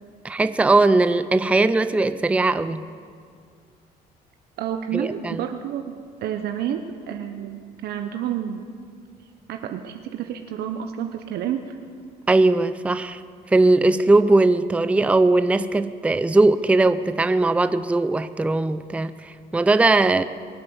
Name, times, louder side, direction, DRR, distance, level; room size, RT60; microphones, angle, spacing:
voice 1, 0.2-2.9 4.9-5.4 12.3-13.2 13.5-20.2, right 2 dB, 5° right, 12 dB, 0.5 m, -19 dB
voice 2, 4.6-5.9 6.2-8.6 9.5-11.8, right 9 dB, 70° right, 6 dB, 0.9 m, -29 dB
22.5 x 7.9 x 7.9 m, 2.1 s
cardioid pair, 110°, 17 cm